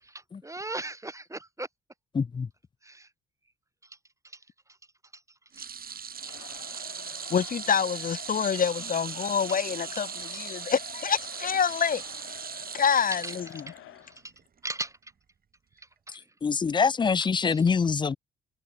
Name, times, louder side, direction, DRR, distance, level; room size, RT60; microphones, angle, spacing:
voice 1, 0.0-1.7 2.8-3.1 3.8-4.0 4.2-4.8 5.1-5.2 5.6-6.0 6.7-6.8 9.5-9.6 10.2-10.4 11.8-12.0 13.2-13.3 13.7-13.8 14.0-14.3 14.6-15.1 15.8-16.3 17.2-17.7, right 2 dB, 15° right, 6.5 m, -40 dB
voice 2, 2.1-2.5 16.4-18.2, left 5 dB, 25° left, 0.4 m, -24 dB
sound 1, 5.5-14.0 14.4-14.6 15.8-15.9, right 7 dB, 45° right, 5.3 m, -39 dB
Crowd, 6.1-14.2, left 14 dB, 85° left, 4.6 m, -48 dB
voice 3, 7.3-12.0 12.7-13.4, left 7 dB, 45° left, 1.1 m, -27 dB
cardioid pair, 90°, 20 cm